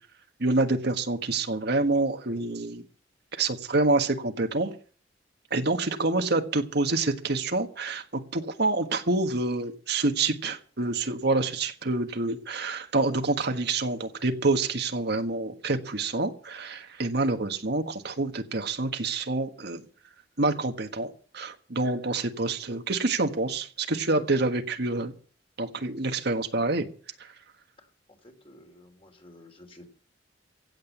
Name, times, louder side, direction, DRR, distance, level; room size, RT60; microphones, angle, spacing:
voice 1, 0.4-2.8 3.3-4.7 5.5-19.8 20.4-25.1 25.6-26.9 27.2-27.3, right 2 dB, 60° right, 6 dB, 1.5 m, -27 dB
voice 2, 28.2-29.9, left 1 dB, 30° left, 4 dB, 3.2 m, -52 dB
16.5 x 8.0 x 8.1 m, 0.42 s
head